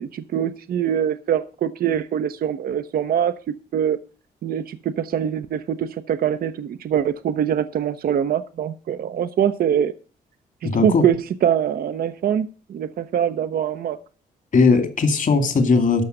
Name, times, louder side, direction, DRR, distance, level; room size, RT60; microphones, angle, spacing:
voice 1, 0.0-3.4 3.7-4.0 4.4-9.9 10.6-14.0, right 9 dB, 65° right, 10 dB, 0.7 m, -23 dB
voice 2, 10.6-11.0 14.5-16.0, left 4 dB, 55° left, 8 dB, 2.3 m, -18 dB
12.5 x 5.8 x 6.5 m, 0.37 s
cardioid pair, 70°, 16 cm